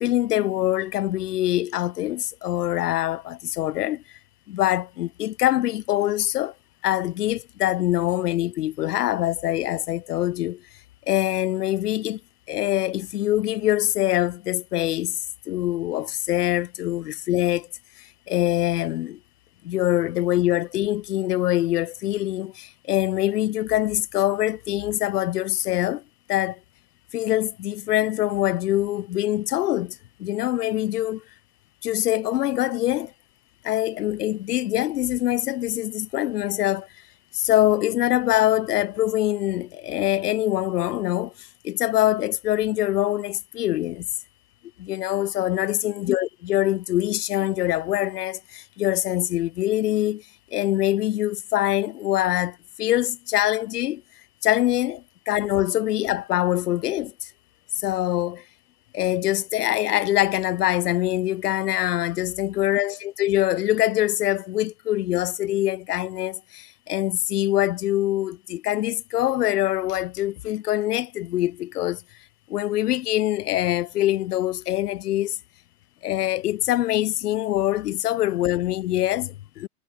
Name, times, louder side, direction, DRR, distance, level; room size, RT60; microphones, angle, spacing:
voice 1, 0.0-4.0 4.5-6.5 6.8-10.6 11.1-12.2 12.5-15.2 15.5-17.7 18.3-19.2 19.6-26.0 26.3-26.6 27.1-31.2 31.8-33.1 33.6-36.9 37.3-41.3 41.6-44.1 44.8-50.2 50.5-54.0 54.4-57.1 57.8-58.4 58.9-72.0 72.5-75.4 76.0-79.7, left 14 dB, 90° left, 0.6 m, -24 dB
hypercardioid pair, 115°, 45 cm